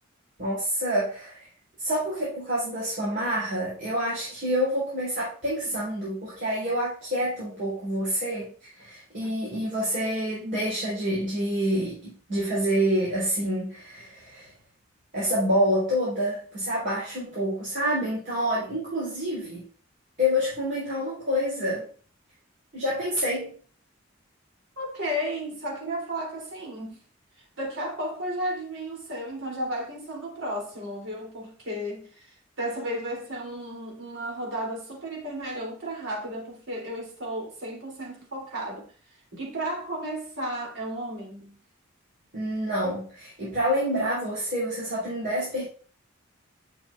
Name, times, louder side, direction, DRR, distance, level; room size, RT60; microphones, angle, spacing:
voice 1, 0.4-1.4 1.8-14.5 15.1-19.6 20.2-21.9 22.7-23.5 42.3-45.6, equal, 45° right, 4.1 m, -27 dB
voice 2, 24.8-27.0 27.6-38.9 39.3-41.6, equal, 80° right, 3.5 m, -33 dB
10.5 x 6.3 x 2.6 m
head